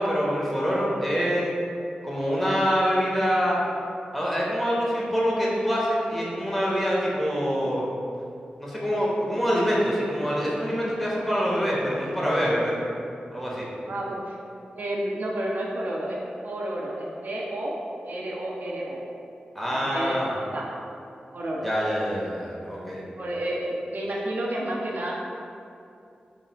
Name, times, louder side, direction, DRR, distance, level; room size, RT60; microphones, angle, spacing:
voice 1, 0.0-1.5 2.0-3.6 4.1-7.8 8.6-12.7 13.3-13.7 19.5-20.4 21.6-23.0, equal, 5° left, -5 dB, 1.1 m, -25 dB
voice 2, 13.9-14.4 14.7-17.8 18.0-19.0 19.7-20.7 21.3-21.7 23.2-25.1, right 1 dB, 60° right, -3 dB, 0.5 m, -31 dB
3.8 x 2.1 x 4.2 m, 2.6 s
cardioid pair, 45°, 3 cm